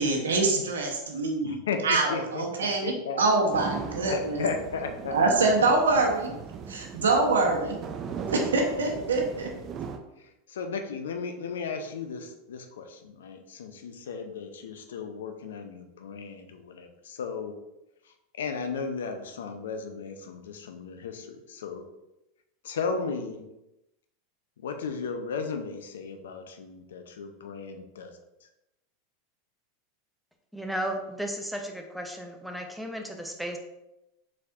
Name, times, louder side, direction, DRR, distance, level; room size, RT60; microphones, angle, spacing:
voice 1, 0.0-1.6 1.8-4.5 5.1-6.3 6.7-7.8 8.3-9.5, right 3 dB, 85° right, 1 dB, 0.9 m, -25 dB
voice 2, 1.4-2.5 2.8-3.5 4.1-5.2 10.5-17.5 18.4-21.8 22.6-23.4 24.6-28.1, left 5 dB, 80° left, 6 dB, 0.5 m, -35 dB
sound 1, 3.5-10.0, right 6 dB, 40° right, 0.5 m, -39 dB
voice 3, 30.5-33.6, equal, ahead, 3 dB, 0.7 m, -34 dB
4.3 x 4.1 x 2.4 m, 0.92 s
hypercardioid pair, 95°, 0 cm